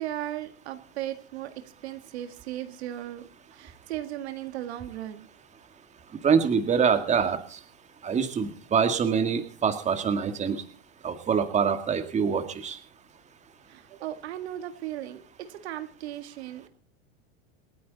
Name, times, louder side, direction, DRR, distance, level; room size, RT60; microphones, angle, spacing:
voice 1, 0.0-1.5 1.8-5.3 13.7-16.7, right 13 dB, 80° right, 9 dB, 1.9 m, -36 dB
voice 2, 6.2-7.6 8.0-10.6 11.0-12.8, right 6 dB, 20° right, 8 dB, 2.0 m, -25 dB
27.5 x 9.4 x 4.1 m, 0.39 s
supercardioid pair, 130°, 32 cm